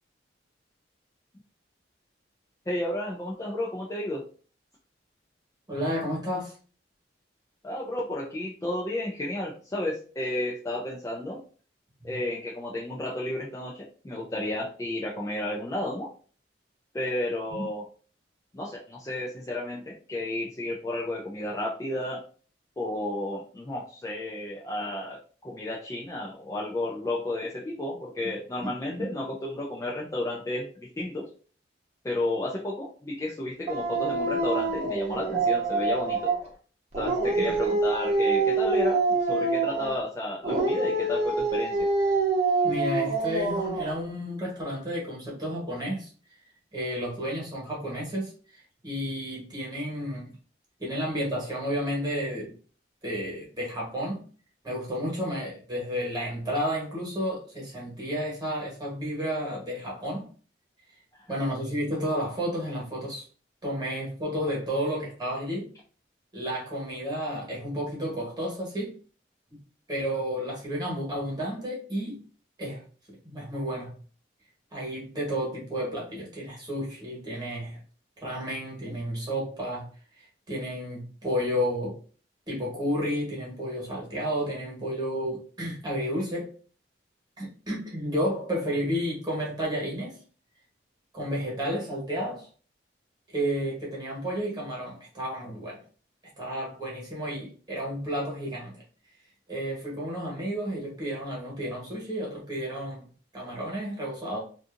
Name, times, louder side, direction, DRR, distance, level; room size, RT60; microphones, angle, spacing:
voice 1, 2.7-4.2 7.6-11.4 12.0-16.1 16.9-17.8 18.5-22.2 22.8-25.2 25.4-31.3 32.0-36.3 37.0-39.0 39.3-41.9, left 1 dB, 15° left, -2 dB, 0.3 m, -32 dB
voice 2, 5.7-6.5 12.0-12.2 17.5-17.6 37.3-37.6 42.6-46.1 46.7-50.3 50.8-52.5 53.0-54.2 54.6-60.3 61.3-63.2 63.6-65.7 66.3-68.9 69.9-72.2 72.6-74.0 74.7-77.8 78.2-79.9 80.1-82.0 82.5-86.5 87.4-90.2 91.1-92.5 93.3-95.8 96.4-98.8 99.5-103.0 103.3-104.4, equal, 20° right, -4 dB, 1.1 m, -31 dB
Dog, 33.7-36.5 36.9-40.0 40.4-44.0, right 3 dB, 40° right, 0.7 m, -26 dB
2.6 x 2.5 x 2.4 m, 0.40 s
head